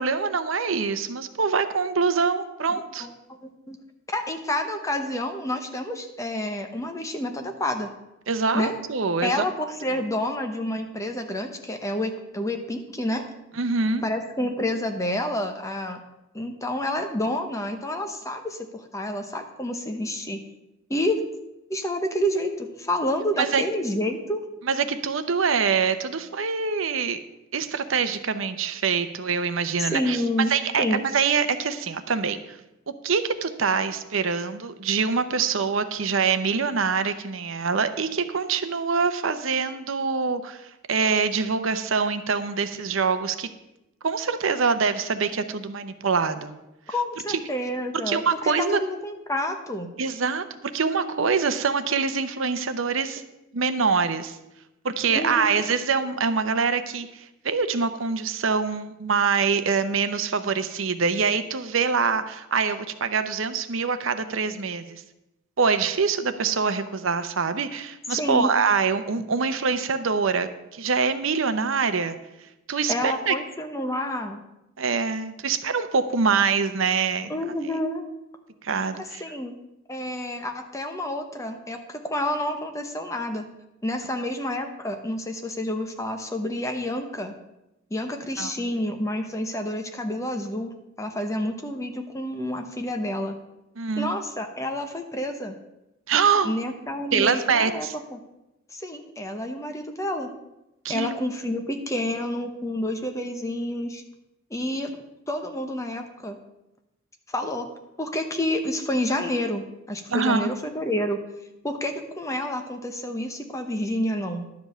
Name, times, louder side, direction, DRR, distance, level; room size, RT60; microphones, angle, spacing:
voice 1, 0.0-3.1 8.3-9.4 13.6-14.0 23.4-23.6 24.6-27.2 27.5-30.2 30.5-32.6 33.0-43.5 44.0-46.6 47.3-47.4 48.1-48.8 50.0-50.4 50.7-53.2 53.5-54.4 54.8-65.0 65.6-72.2 72.7-73.3 74.8-77.3 78.6-79.2 88.4-88.7 93.8-94.1 96.1-96.5 97.1-97.9 100.8-101.2 110.1-110.5, right 5 dB, 70° right, 10 dB, 0.7 m, -24 dB
voice 2, 2.7-3.1 3.4-3.8 4.1-7.9 8.5-8.8 9.2-13.3 14.0-16.0 16.3-20.4 20.9-21.2 21.7-24.4 29.9-30.5 30.8-31.0 46.9-49.9 55.1-55.6 68.2-68.5 72.9-74.4 77.3-78.0 79.0-79.5 79.9-83.5 83.8-87.3 87.9-93.3 94.0-95.5 96.4-98.2 98.7-100.3 100.9-104.0 104.5-105.0 105.3-106.4 107.3-107.7 108.0-111.2 111.6-114.5, left 1 dB, 15° left, 5 dB, 0.9 m, -29 dB
11.5 x 5.2 x 7.6 m, 0.92 s
head